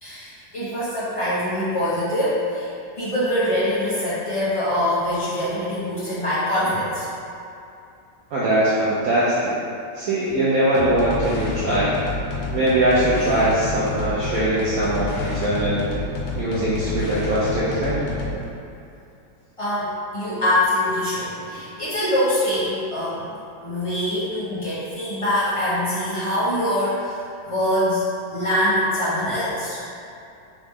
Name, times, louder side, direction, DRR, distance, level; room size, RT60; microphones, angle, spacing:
voice 1, 0.0-2.7 3.0-7.0 19.6-23.3 23.6-27.2 27.4-28.0 28.3-29.8, left 1 dB, 50° left, -12 dB, 0.3 m, -24 dB
voice 2, 8.3-9.5 9.9-11.9 12.5-15.9 16.3-18.1, right 1 dB, 70° right, -9 dB, 0.8 m, -21 dB
sound 1, 10.7-18.4, left 2 dB, 85° left, 1.4 m, -29 dB
3.8 x 3.6 x 3.1 m, 2.6 s
omnidirectional pair, 2.1 m